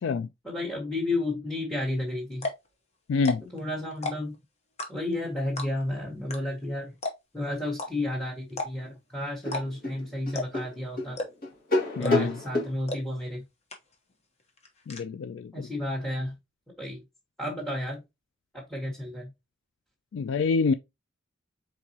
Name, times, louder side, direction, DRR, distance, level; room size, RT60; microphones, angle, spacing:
voice 1, 0.4-2.5 3.5-4.3 4.9-6.9 7.3-11.2 12.0-13.4 15.5-16.3 16.8-17.0 17.4-18.0 18.5-19.3, left 1 dB, 5° left, 1.3 m, -32 dB
sound 1, 1.9-2.0 2.3-2.7 3.1-3.6 3.9-4.4 4.8-5.2 5.6-5.9 6.3-6.4 6.6-6.7 7.0-7.4 7.8-7.9 8.5-8.9 9.4-9.6 9.9-10.0 10.3-10.7 11.1-11.5 12.0-12.4 12.9-13.0 13.3-13.4 13.7-14.1 14.4-15.0, left 2 dB, 35° left, 1.1 m, -33 dB
voice 2, 3.1-3.4 12.0-12.4 14.9-15.7 20.1-20.7, left 4 dB, 75° left, 0.3 m, -26 dB
sound 2, 8.9-9.0 9.4-12.7, left 2 dB, 50° left, 1.8 m, -29 dB
4.5 x 4.0 x 2.8 m
head